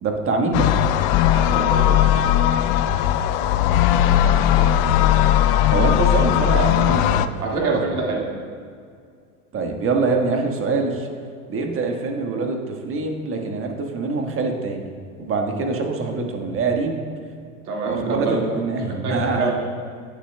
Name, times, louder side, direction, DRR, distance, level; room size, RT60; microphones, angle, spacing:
voice 1, 0.0-0.7 5.7-7.8 9.5-11.1 11.5-14.9 15.3-17.0 17.8-19.6, right 3 dB, 30° right, 3 dB, 1.4 m, -24 dB
sound 1, 0.5-7.3, left 11 dB, 45° left, 0.4 m, -18 dB
voice 2, 1.3-2.0 4.6-4.7 7.4-8.2 17.7-18.4 18.9-19.7, right 3 dB, 80° right, -2 dB, 2.0 m, -26 dB
17.0 x 7.1 x 2.2 m, 2.2 s
hypercardioid pair, 95°, 44 cm